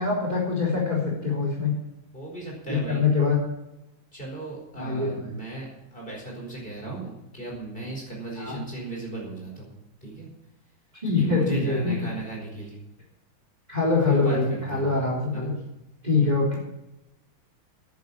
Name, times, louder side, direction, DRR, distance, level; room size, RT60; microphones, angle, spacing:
voice 1, 0.0-1.7 2.7-3.4 4.7-5.3 8.4-8.6 11.0-11.9 13.7-15.5 16.0-16.6, left 4 dB, 20° right, -4 dB, 3.7 m, -24 dB
voice 2, 2.1-3.0 4.1-9.7 10.0-10.3 11.1-12.8 14.1-14.9 15.3-15.5, right 3 dB, 25° left, -3 dB, 5.1 m, -36 dB
10.5 x 9.3 x 8.8 m, 0.93 s
omnidirectional pair, 2.2 m